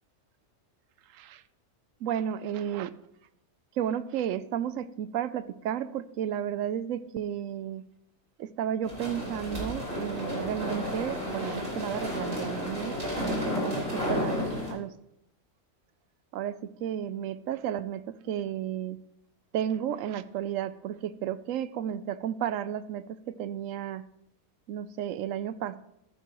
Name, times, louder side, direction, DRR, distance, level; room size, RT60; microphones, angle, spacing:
voice 1, 2.0-2.9 3.8-7.8 8.4-14.4 14.7-14.9 16.3-19.0 19.5-24.0 24.7-25.8, right 10 dB, 80° right, 15 dB, 1.0 m, -33 dB
sound 1, 8.8-14.7, equal, 50° right, 4.8 m, -32 dB
15.0 x 9.2 x 3.0 m, 0.80 s
omnidirectional pair, 1.4 m